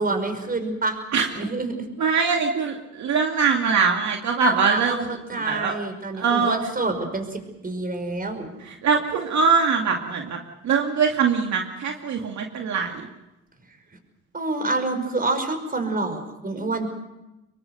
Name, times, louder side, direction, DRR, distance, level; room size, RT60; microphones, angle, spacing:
voice 1, 0.0-1.0 1.3-1.8 4.4-8.5 14.3-16.9, right 2 dB, 30° right, 7 dB, 5.4 m, -27 dB
voice 2, 2.0-5.8 6.1-6.6 8.6-13.1, right 5 dB, 65° right, 2 dB, 2.4 m, -23 dB
25.0 x 22.5 x 6.6 m, 0.98 s
cardioid pair, 90°, 30 cm